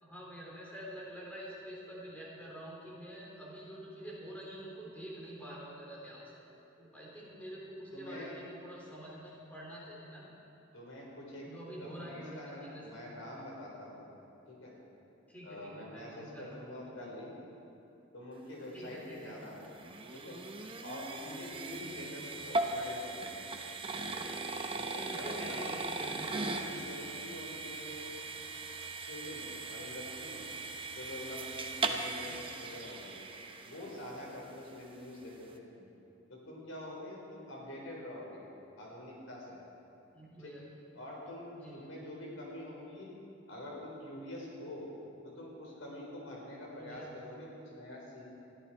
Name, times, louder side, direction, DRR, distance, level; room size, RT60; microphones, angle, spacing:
voice 1, 0.0-6.3 6.8-10.2 11.4-12.9 15.3-16.7 17.0-17.1 18.7-19.4 21.2-22.2 25.2-26.5 32.2-32.3 40.0-40.7 41.5-41.9 46.8-47.1, equal, 10° left, -5 dB, 3.6 m, -47 dB
voice 2, 7.9-8.3 10.7-11.5 11.8-14.1 14.5-14.7 15.4-17.4 18.1-19.6 20.1-20.4 20.8-23.5 23.9-24.2 24.7-25.6 26.2-28.0 29.0-30.4 30.9-33.2 33.6-35.8 36.3-38.4 38.8-39.6 40.4-40.5 40.9-43.1 43.5-44.9 45.2-48.2, left 1 dB, 80° left, -3 dB, 4.6 m, -46 dB
sound 1, 19.1-34.3, right 3 dB, 25° right, 0.9 m, -39 dB
21.0 x 13.5 x 4.6 m, 2.8 s
head